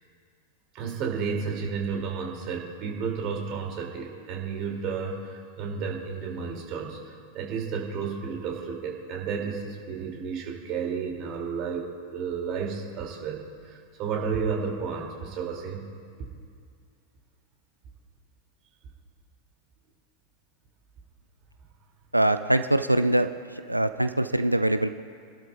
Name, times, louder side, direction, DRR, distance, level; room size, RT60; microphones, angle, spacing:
voice 1, 0.7-15.9, right 6 dB, 40° right, 0 dB, 2.3 m, -32 dB
voice 2, 22.1-25.0, right 1 dB, 85° right, 10 dB, 0.4 m, -23 dB
25.5 x 12.0 x 2.3 m, 2.2 s
figure-of-eight pair, 90°, 0 cm